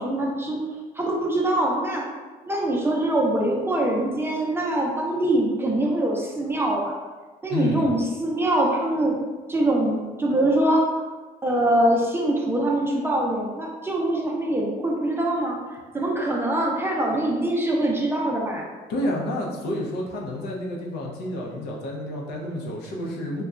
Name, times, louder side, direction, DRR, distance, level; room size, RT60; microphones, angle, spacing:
voice 1, 0.0-2.0 2.5-6.9 7.4-9.2 9.5-10.9 11.4-15.6 15.9-18.7, right 1 dB, 15° right, -2 dB, 0.5 m, -23 dB
voice 2, 7.5-7.9 18.9-23.4, left 1 dB, 80° left, -2 dB, 0.7 m, -29 dB
4.0 x 2.2 x 2.3 m, 1.4 s
cardioid pair, 110°, 17 cm